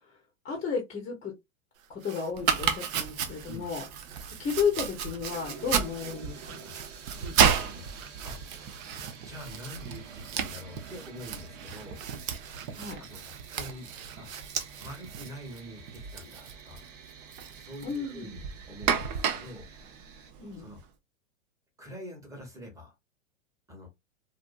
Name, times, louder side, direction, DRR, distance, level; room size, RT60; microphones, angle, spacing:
voice 1, 0.4-1.3 1.9-3.9 4.4-6.6 12.8-13.0 17.8-18.4 20.4-20.7, left 6 dB, 15° left, 0.7 m, -33 dB
sound 1, 1.7-15.2, right 7 dB, 80° right, 0.7 m, -47 dB
Domestic sounds home sounds, 2.4-20.8, right 7 dB, 35° right, 0.5 m, -33 dB
sound 2, 5.3-20.3, right 6 dB, 60° right, 1.0 m, -50 dB
voice 2, 6.6-7.9 8.2-8.4 9.2-12.0 13.0-13.9 14.2-14.3 14.8-16.9 17.6-19.7 20.6-20.8 21.8-22.9 23.7-23.9, equal, 10° right, 1.0 m, -45 dB
2.6 x 2.4 x 2.3 m
hypercardioid pair, 120°, 40 cm